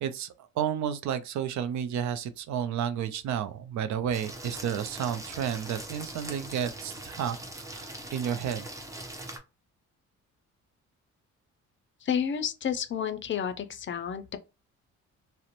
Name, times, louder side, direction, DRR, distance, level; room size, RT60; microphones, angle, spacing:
voice 1, 0.0-7.4 7.7-8.7, right 9 dB, 70° right, 0.4 m, -31 dB
sound 1, 4.1-9.4, right 1 dB, 10° right, 0.6 m, -41 dB
voice 2, 12.0-14.4, left 8 dB, 40° left, 0.4 m, -30 dB
2.5 x 2.1 x 2.8 m
cardioid pair, 90°, 30 cm